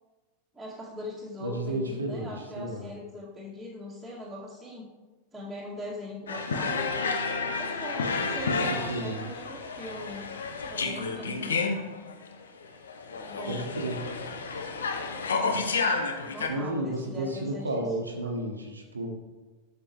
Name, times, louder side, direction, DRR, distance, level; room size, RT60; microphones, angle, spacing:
voice 1, 0.5-4.9 5.3-6.9 7.5-10.2 10.7-11.7 13.2-13.7 16.2-17.9, left 1 dB, ahead, -11 dB, 2.1 m, -41 dB
voice 2, 1.4-2.9 8.7-9.2 13.4-14.0 16.5-19.1, right 1 dB, 80° right, 2 dB, 1.2 m, -32 dB
sound 1, 6.3-16.5, left 4 dB, 65° left, 0.8 m, -31 dB
12.0 x 7.3 x 3.0 m, 1.3 s
figure-of-eight pair, 90°, 0 cm